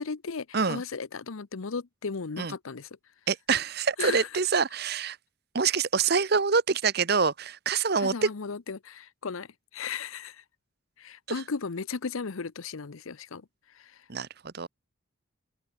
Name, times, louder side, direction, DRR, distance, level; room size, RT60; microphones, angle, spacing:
voice 1, 0.0-3.0 4.0-4.3 8.0-10.4 11.0-14.1, left 5 dB, 80° left, 0.7 m, -36 dB
voice 2, 3.3-5.2 5.5-8.3 14.1-14.7, right 5 dB, 50° right, 0.9 m, -26 dB
open air
head